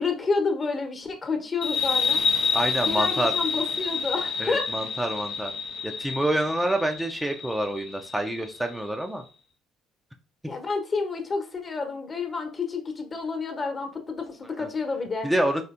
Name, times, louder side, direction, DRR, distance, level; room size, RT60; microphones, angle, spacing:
voice 1, 0.0-2.2 2.8-4.7 10.5-15.3, left 4 dB, 35° left, 5 dB, 1.1 m, -29 dB
sound 1, 1.6-8.8, left 5 dB, 60° left, 0.7 m, -28 dB
voice 2, 2.5-3.3 4.4-5.5 5.8-9.2 14.6-14.7 15.2-15.6, right 1 dB, 5° right, 3 dB, 0.6 m, -27 dB
4.3 x 3.3 x 2.5 m, 0.35 s
hypercardioid pair, 55°, 0 cm